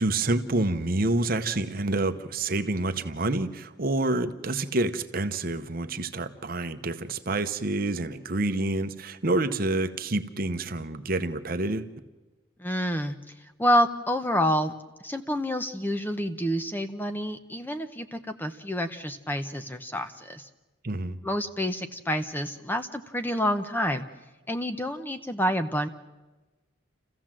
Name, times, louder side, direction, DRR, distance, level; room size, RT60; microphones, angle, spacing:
voice 1, 0.0-11.9 20.8-21.2, right 2 dB, 45° right, 10 dB, 0.9 m, -28 dB
voice 2, 12.6-13.2 13.6-14.7 15.0-20.5 21.2-24.0 24.5-25.9, equal, 10° left, 8 dB, 0.7 m, -28 dB
28.5 x 15.0 x 7.5 m, 1.2 s
head